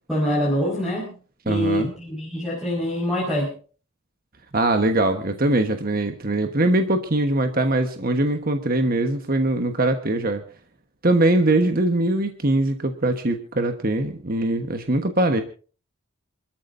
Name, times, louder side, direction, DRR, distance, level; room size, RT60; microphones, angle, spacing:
voice 1, 0.1-1.1 1.4-3.5, equal, ahead, -4 dB, 5.0 m, -24 dB
voice 2, 1.5-1.9 4.5-10.4 11.0-15.4, right 2 dB, 45° right, 6 dB, 1.3 m, -22 dB
28.5 x 13.5 x 2.7 m, 0.39 s
head